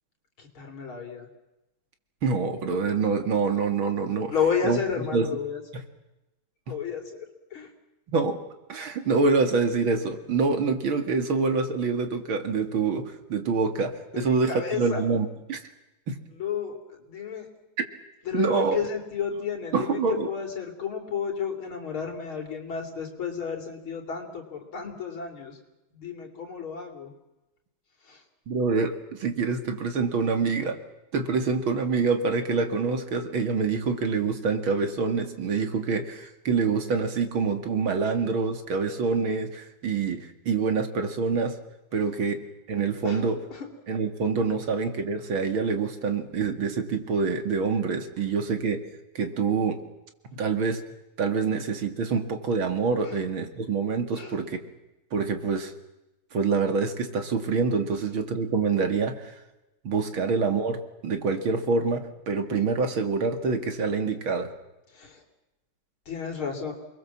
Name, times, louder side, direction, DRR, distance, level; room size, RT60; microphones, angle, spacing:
voice 1, 0.4-1.3 4.3-5.6 6.7-7.7 14.1-15.0 16.4-17.5 18.2-25.6 25.9-27.1 28.1-28.2 42.0-42.1 43.0-43.2 43.5-43.7 53.0-53.2 54.1-54.3 60.2-60.3 64.9-65.2 66.1-66.7, left 7 dB, 90° left, 3 dB, 4.4 m, -32 dB
voice 2, 2.2-4.3 4.6-4.8 5.1-5.3 5.7-5.8 6.7-6.8 8.1-8.4 8.7-15.6 16.1-16.2 17.8-17.9 18.3-18.8 19.7-20.3 28.5-30.8 31.1-41.6 41.9-42.4 42.7-43.4 43.9-48.8 49.1-49.8 50.3-50.8 51.2-54.6 55.1-55.7 56.3-59.3 59.8-64.5, right 4 dB, 80° right, 7 dB, 3.0 m, -26 dB
28.5 x 22.0 x 7.4 m, 0.96 s
omnidirectional pair, 2.2 m